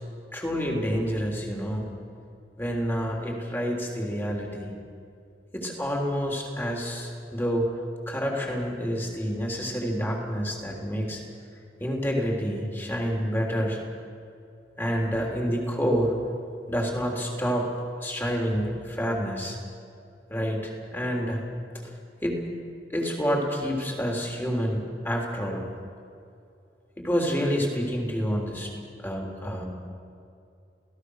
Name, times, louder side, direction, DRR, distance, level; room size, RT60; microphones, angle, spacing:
voice 1, 0.3-1.9 2.6-4.7 5.5-7.7 8.1-11.2 11.8-13.8 14.8-16.2 16.7-17.7 18.0-19.6 20.3-21.4 22.2-22.4 22.9-25.6 27.0-28.7 29.0-29.6, equal, 15° left, 0 dB, 3.4 m, -28 dB
28.0 x 17.0 x 6.5 m, 2.5 s
head